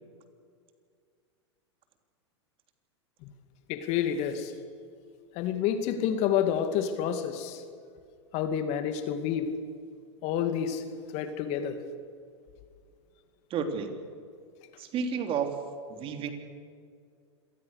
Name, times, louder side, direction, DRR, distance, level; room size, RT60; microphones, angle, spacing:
voice 1, 3.7-4.5 5.3-7.6 8.3-9.5 10.2-10.8 11.1-11.8, left 9 dB, 45° left, 8 dB, 2.5 m, -29 dB
voice 2, 13.5-13.9 14.8-15.5 16.0-16.3, right 6 dB, 35° right, 6 dB, 3.2 m, -30 dB
26.5 x 19.5 x 6.7 m, 2.2 s
hypercardioid pair, 100°, 15 cm